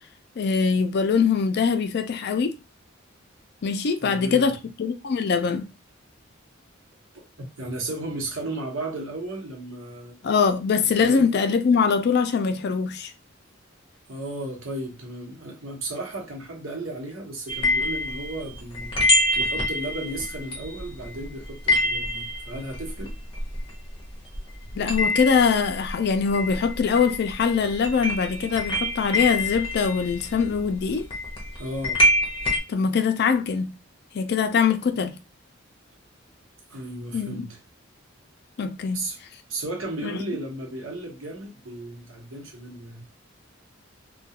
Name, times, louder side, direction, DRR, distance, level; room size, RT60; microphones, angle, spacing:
voice 1, 0.4-2.6 3.6-5.6 10.2-13.1 24.8-31.1 32.7-33.7 34.1-35.2 37.1-37.5 38.6-39.0 40.0-40.2, left 5 dB, 55° left, 0.4 m, -23 dB
voice 2, 4.0-4.5 7.6-10.2 10.8-11.4 14.1-18.9 19.3-23.1 31.6-32.0 36.7-37.6 38.9-39.2 39.5-43.0, right 2 dB, 80° right, 0.9 m, -34 dB
sound 1, 17.5-24.1 24.3-32.6, left 1 dB, 30° left, 0.7 m, -26 dB
2.3 x 2.2 x 2.8 m
head